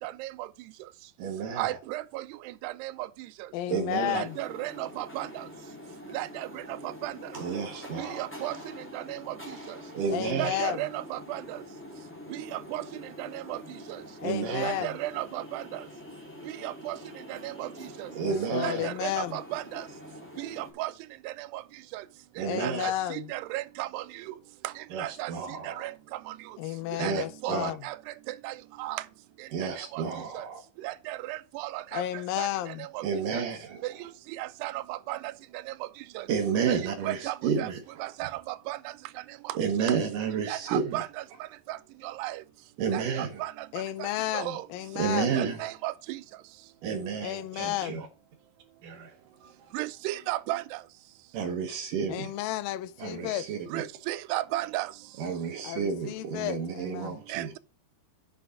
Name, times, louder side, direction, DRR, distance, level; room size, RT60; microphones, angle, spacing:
voice 1, 0.0-0.5 1.6-3.1 3.4-3.5 4.0-5.5 6.1-7.3 8.0-8.6 8.9-9.8 10.3-11.6 12.3-12.9 13.2-13.6 13.9-14.0 14.6-15.9 16.4-17.0 17.3-18.1 18.6-19.9 20.4-20.9 21.2-21.6 21.9-22.1 22.4-24.3 24.6-25.3 25.6-26.6 27.0-29.0 29.4-30.0 30.3-30.5 30.8-33.0 33.3-33.4 33.8-35.9 36.2-36.3 36.7-37.7 38.0-38.9 39.4-39.9 40.5-41.2 41.7-41.8 42.0-42.4 42.9-43.7 44.0-44.7 45.1-46.2 49.7-50.8 53.7-54.9 57.3-57.6, right 17 dB, 90° right, 2.7 m, -35 dB
voice 2, 1.2-1.8 3.7-4.2 7.3-8.2 9.9-10.6 14.2-14.9 18.1-18.9 22.4-22.9 24.9-25.9 27.0-27.7 29.5-30.6 33.0-34.0 36.3-38.1 39.5-41.0 42.8-43.4 45.0-45.7 46.8-48.1 48.8-49.2 49.4-49.7 51.3-52.3 53.0-53.9 55.2-57.5, right 6 dB, 65° right, 2.3 m, -31 dB
voice 3, 3.5-4.4 10.1-10.8 14.2-14.9 18.2-19.4 22.4-23.3 26.6-27.8 31.9-32.9 43.7-45.3 47.2-48.0 52.1-53.5 55.6-57.2, left 13 dB, 85° left, 2.0 m, -32 dB
sound 1, 3.9-20.7, left 1 dB, 5° left, 1.4 m, -45 dB
7.8 x 6.2 x 6.0 m
omnidirectional pair, 4.7 m